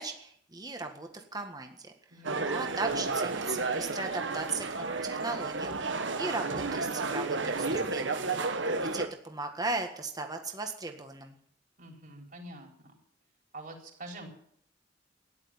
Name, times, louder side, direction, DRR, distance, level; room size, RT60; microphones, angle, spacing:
voice 1, 0.0-1.9 2.4-11.4, right 3 dB, 20° right, 4 dB, 1.6 m, -37 dB
voice 2, 2.1-2.7 11.8-12.9 13.5-14.3, right 1 dB, 50° right, 1 dB, 4.3 m, -46 dB
sound 1, 2.2-9.1, right 3 dB, 80° right, 1.4 m, -32 dB
14.0 x 10.5 x 8.8 m, 0.66 s
head